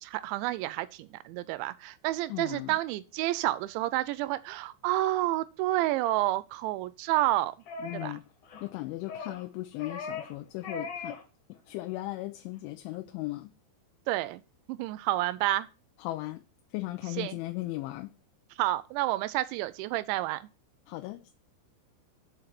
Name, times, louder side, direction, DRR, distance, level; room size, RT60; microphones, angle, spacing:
voice 1, 0.0-7.6 7.9-8.2 14.1-14.4 14.7-15.7 17.2-17.4 18.6-20.5, right 16 dB, 85° right, 2.8 m, -29 dB
voice 2, 2.3-2.7 7.8-8.2 8.6-11.2 11.7-13.5 16.0-16.4 16.7-18.1 20.9-21.3, left 18 dB, 85° left, 3.0 m, -37 dB
sound 1, 7.7-8.2 8.4-8.7 9.1-9.4 9.8-10.4 10.6-11.2 11.5-11.7, left 4 dB, 55° left, 3.7 m, -39 dB
7.1 x 5.2 x 5.9 m
omnidirectional pair, 5.4 m